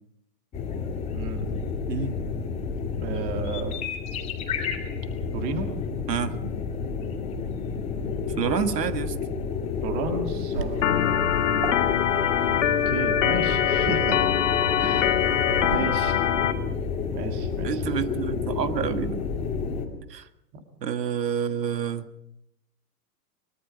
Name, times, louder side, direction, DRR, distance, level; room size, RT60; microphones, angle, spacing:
sound 1, 0.5-19.9, left 5 dB, 15° left, 2.5 m, -30 dB
voice 1, 1.1-1.5 3.0-3.8 5.3-5.7 9.8-10.8 12.6-14.2 14.8-15.1 15.7-16.2 17.1-17.8 20.5-20.6, right 4 dB, 20° right, 5 dB, 1.9 m, -32 dB
voice 2, 1.9-2.2 6.1-6.4 8.4-9.1 17.6-19.3 20.1-20.3 20.8-22.1, right 8 dB, 80° right, 9 dB, 1.7 m, -28 dB
Waves surf, 10.5-15.8, right 9 dB, 35° right, 1.1 m, -39 dB
Organ, 10.8-16.5, left 10 dB, 50° left, 1.9 m, -23 dB
23.0 x 21.5 x 5.3 m, 0.81 s
hypercardioid pair, 165°, 48 cm